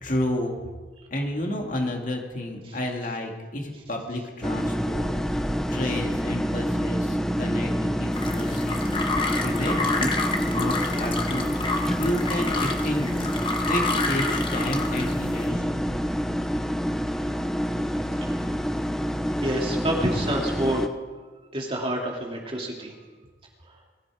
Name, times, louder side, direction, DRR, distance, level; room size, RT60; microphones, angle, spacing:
voice 1, 0.0-0.6 1.1-9.1 9.4-11.5 12.0-13.4 13.7-15.8, left 1 dB, 50° left, 1 dB, 2.5 m, -31 dB
sound 1, 4.4-20.9, equal, 5° left, 0.7 m, -27 dB
sound 2, 8.1-15.5, left 3 dB, 30° left, 1.6 m, -29 dB
voice 2, 19.4-20.8 21.5-22.9, right 1 dB, 30° right, 0 dB, 2.7 m, -28 dB
21.0 x 13.5 x 5.0 m, 1.4 s
head